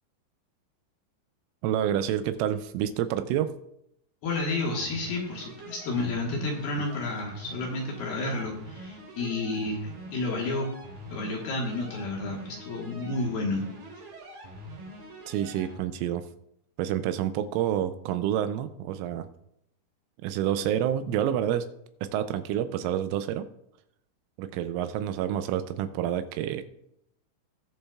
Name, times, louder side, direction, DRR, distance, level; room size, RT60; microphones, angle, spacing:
voice 1, 1.6-3.5 15.3-16.2 16.8-19.3 20.2-21.7 22.0-23.5 24.4-26.6, right 10 dB, 85° right, 11 dB, 3.0 m, -28 dB
voice 2, 4.2-10.7 11.1-13.7, left 2 dB, 65° left, -1 dB, 2.7 m, -31 dB
sound 1, 4.3-15.8, right 1 dB, 50° right, 4.0 m, -45 dB
20.0 x 7.1 x 2.4 m, 0.78 s
omnidirectional pair, 5.8 m